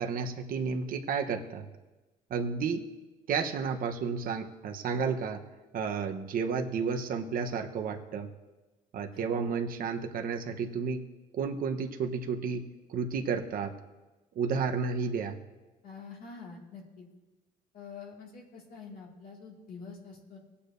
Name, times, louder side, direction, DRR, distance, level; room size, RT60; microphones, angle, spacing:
voice 1, 0.0-1.6 2.3-2.9 3.3-5.4 5.7-8.3 8.9-11.0 11.3-12.6 12.9-13.7 14.4-15.4, right 5 dB, 55° right, 4 dB, 1.0 m, -31 dB
voice 2, 15.8-17.0 17.7-20.4, left 5 dB, 60° left, -2 dB, 2.3 m, -46 dB
18.5 x 8.4 x 2.7 m, 1.1 s
cardioid pair, 110°, 17 cm